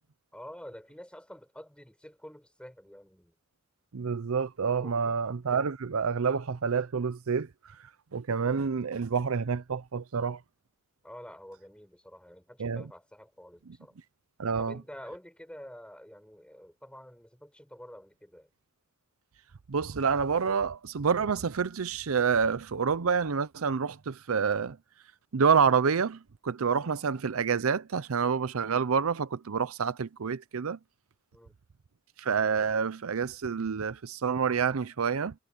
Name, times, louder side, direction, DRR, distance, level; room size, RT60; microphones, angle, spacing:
voice 1, 0.3-3.4 4.8-5.1 11.0-14.0 14.6-18.5 31.3-31.6, equal, 5° left, 7.1 m, -48 dB
voice 2, 3.9-7.5 8.1-10.4 12.6-12.8 13.7-13.8 14.4-14.8 19.7-24.8 25.3-30.8 32.2-35.3, right 6 dB, 75° right, 0.6 m, -28 dB
head